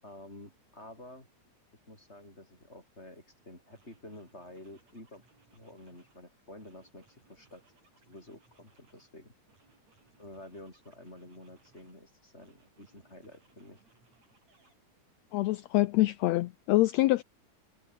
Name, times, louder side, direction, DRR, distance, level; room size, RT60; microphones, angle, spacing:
voice 1, 0.0-1.3 1.7-5.2 5.5-7.7 8.0-9.3 10.2-13.8, left 1 dB, 20° left, 8.4 m, -50 dB
sound 1, 3.2-3.3 3.7-6.2 6.6-9.1 9.5-12.0 12.4-14.7, right 3 dB, 60° right, 8.1 m, -67 dB
voice 2, 15.3-17.2, left 17 dB, 80° left, 1.6 m, -25 dB
omnidirectional pair, 3.5 m